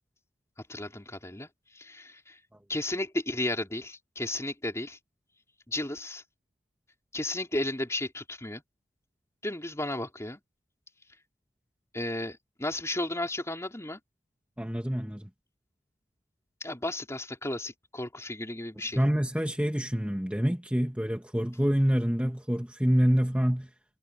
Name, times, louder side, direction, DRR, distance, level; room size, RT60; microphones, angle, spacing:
voice 1, 0.7-2.4 2.7-5.0 5.7-6.2 7.1-8.6 9.4-10.4 11.9-14.0 16.6-19.0, left 1 dB, 15° left, 3.8 m, -34 dB
voice 2, 14.6-15.3 18.8-23.7, equal, 5° right, 1.6 m, -27 dB
head